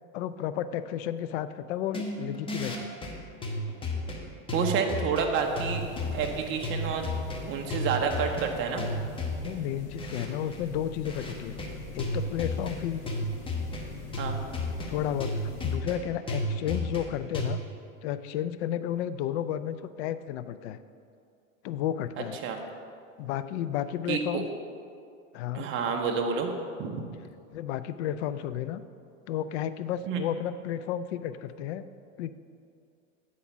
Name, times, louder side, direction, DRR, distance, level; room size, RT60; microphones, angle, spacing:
voice 1, 0.1-2.9 9.4-11.5 11.9-13.0 14.9-17.6 18.0-20.8 21.6-22.4 23.2-24.5 25.3-25.7 27.5-28.8 29.3-31.8 32.2-32.3, left 10 dB, 55° left, 12 dB, 0.5 m, -32 dB
sound 1, 1.9-17.5, left 1 dB, 15° left, 1.0 m, -33 dB
voice 2, 4.5-5.8 6.1-7.0 7.5-8.9 14.2-14.4 22.4-22.6 24.1-24.4 25.5-26.5 26.8-27.0 30.1-30.2, right 6 dB, 30° right, 3 dB, 0.8 m, -29 dB
sound 2, 5.3-15.8, left 3 dB, 35° left, 1.2 m, -43 dB
8.6 x 4.2 x 5.9 m, 2.4 s
hypercardioid pair, 120°, 39 cm